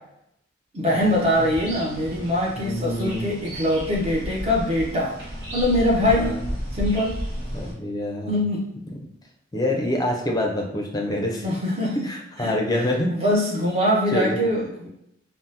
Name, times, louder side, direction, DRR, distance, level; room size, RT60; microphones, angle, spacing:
voice 1, 0.7-5.1 5.5-6.4 6.7-7.2 8.3-8.6 11.4-12.0 12.4-14.9, left 1 dB, 30° right, -2 dB, 0.7 m, -23 dB
sound 1, 0.9-7.7, equal, 55° right, 0.9 m, -33 dB
voice 2, 2.6-3.3 6.0-6.4 7.5-8.3 9.5-11.4 12.0-13.1 14.1-14.4, left 1 dB, 20° left, 1 dB, 0.5 m, -26 dB
3.5 x 2.0 x 2.8 m, 0.79 s
head